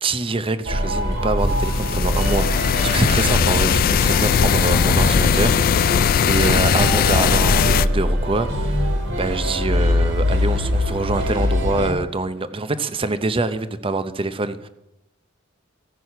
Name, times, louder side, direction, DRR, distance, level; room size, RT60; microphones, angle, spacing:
voice 1, 0.0-5.8 6.3-14.7, right 3 dB, 25° right, 0.6 m, -25 dB
sound 1, 0.7-11.9, equal, 65° right, 2.1 m, -23 dB
sound 2, 1.4-7.9, left 7 dB, 45° left, 0.3 m, -19 dB
15.5 x 6.2 x 5.6 m
head